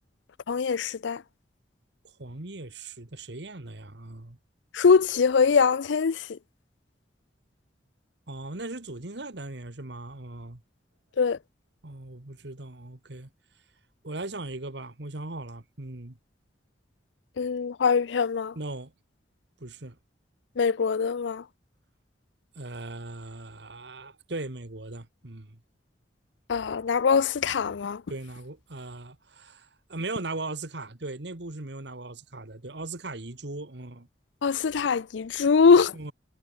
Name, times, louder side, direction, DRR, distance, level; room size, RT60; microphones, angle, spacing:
voice 1, 0.5-1.2 4.7-6.3 11.2-11.4 17.4-18.5 20.6-21.4 26.5-28.0 34.4-35.9, left 5 dB, 75° left, 0.5 m, -22 dB
voice 2, 2.2-4.4 8.3-10.6 11.8-13.3 14.0-16.2 18.5-18.9 19.6-20.0 22.5-25.6 28.1-34.1 35.9-36.1, right 2 dB, 65° right, 1.7 m, -38 dB
head